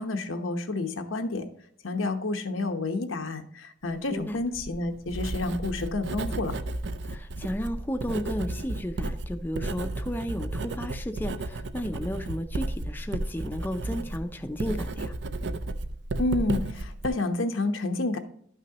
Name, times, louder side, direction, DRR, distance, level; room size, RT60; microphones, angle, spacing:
voice 1, 0.0-1.5 1.8-6.6 16.2-18.2, left 2 dB, 85° left, 6 dB, 1.0 m, -29 dB
Writing, 4.3-17.1, right 2 dB, 60° right, 0.5 m, -33 dB
voice 2, 7.1-15.1, equal, 10° left, 6 dB, 0.4 m, -33 dB
12.0 x 6.0 x 2.9 m, 0.65 s
head